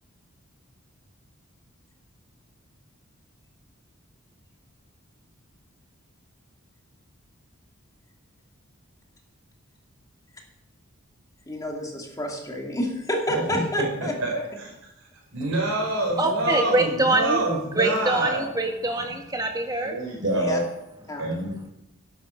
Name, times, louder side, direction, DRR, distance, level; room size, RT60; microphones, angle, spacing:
voice 1, 11.5-14.4 20.3-20.6 21.1-21.3, equal, 15° left, 0 dB, 2.6 m, -29 dB
voice 2, 13.3-14.3 14.6-14.7 15.0-15.1 15.3-18.5 19.8-20.6 21.2-21.5, right 1 dB, 75° right, -2 dB, 5.0 m, -26 dB
voice 3, 16.2-17.4 17.8-20.0, right 2 dB, 20° right, 3 dB, 1.9 m, -24 dB
13.5 x 11.5 x 5.9 m, 0.89 s
head